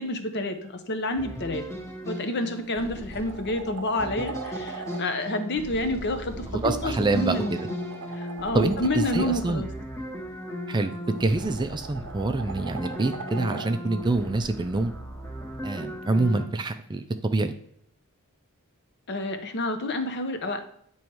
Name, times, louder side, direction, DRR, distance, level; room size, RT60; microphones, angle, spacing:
voice 1, 0.0-1.6 2.1-7.7 8.2-9.7 19.1-20.6, left 1 dB, 50° left, 8 dB, 0.7 m, -29 dB
sound 1, 1.1-16.5, equal, 15° left, 1.2 m, -37 dB
sound 2, 2.2-2.3 2.8-5.0 6.7-9.4 10.9-13.7 16.0-16.1, right 4 dB, 85° right, 0.6 m, -40 dB
voice 2, 6.5-7.7 8.5-9.6 10.7-14.9 15.6-17.5, right 2 dB, 20° right, 8 dB, 0.4 m, -26 dB
8.7 x 3.1 x 4.6 m, 0.67 s
head